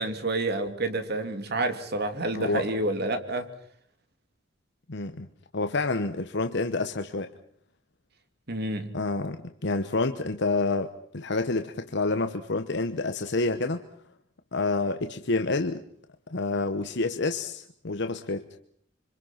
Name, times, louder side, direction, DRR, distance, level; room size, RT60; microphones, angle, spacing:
voice 1, 0.0-3.5 8.5-9.0, right 2 dB, 55° right, 8 dB, 2.6 m, -29 dB
voice 2, 2.3-2.7 4.9-5.3 5.5-7.3 8.9-13.8 14.5-15.8 16.3-18.4, left 3 dB, 65° left, 8 dB, 1.1 m, -28 dB
26.0 x 25.5 x 5.9 m, 0.63 s
head